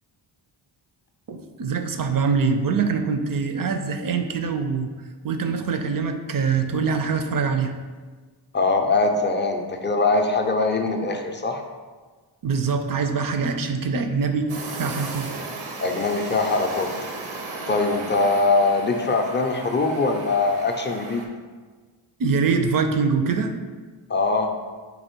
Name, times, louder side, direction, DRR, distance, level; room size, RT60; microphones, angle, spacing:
voice 1, 1.3-4.9 5.2-7.7 12.4-15.3 22.2-23.5, right 5 dB, 45° right, 6 dB, 0.5 m, -24 dB
voice 2, 8.5-11.6 15.8-16.9 17.7-21.3 24.1-24.5, left 3 dB, 25° left, 3 dB, 0.4 m, -22 dB
sound 1, 14.5-21.3, right 3 dB, 80° right, 0.8 m, -36 dB
4.0 x 3.0 x 4.4 m, 1.4 s
wide cardioid pair, 90°, 48 cm